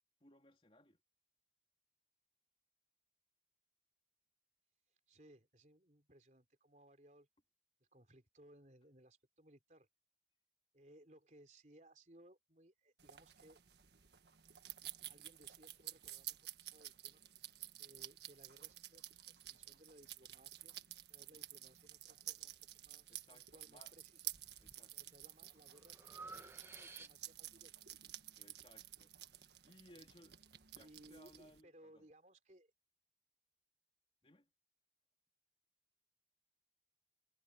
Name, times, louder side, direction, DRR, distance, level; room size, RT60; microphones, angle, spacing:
voice 1, 0.2-1.0 21.2-21.4 23.1-24.0 24.6-25.0 28.4-30.4 30.7-32.1 34.2-34.5, left 1 dB, 30° left, 3.4 m, -64 dB
voice 2, 4.9-7.3 7.9-9.9 10.7-13.6 15.1-17.2 17.8-20.8 21.1-24.3 24.9-27.7 28.1-28.2 29.6-29.7 30.8-32.7, right 1 dB, 40° right, 4.0 m, -64 dB
sound 1, 13.0-31.6, right 13 dB, 75° right, 1.6 m, -52 dB
Breathing, 24.3-24.8 25.3-27.5, right 3 dB, 15° right, 1.3 m, -55 dB
head